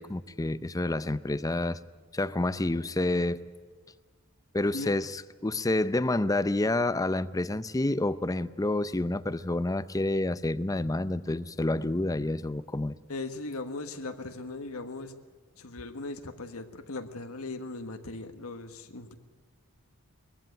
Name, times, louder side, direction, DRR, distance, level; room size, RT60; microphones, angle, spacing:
voice 1, 0.0-1.8 2.1-3.4 4.5-13.0, left 2 dB, 15° left, 15 dB, 0.5 m, -28 dB
voice 2, 13.1-15.1 15.6-19.1, left 2 dB, 75° left, 7 dB, 1.5 m, -38 dB
21.5 x 15.0 x 9.2 m, 1.5 s
head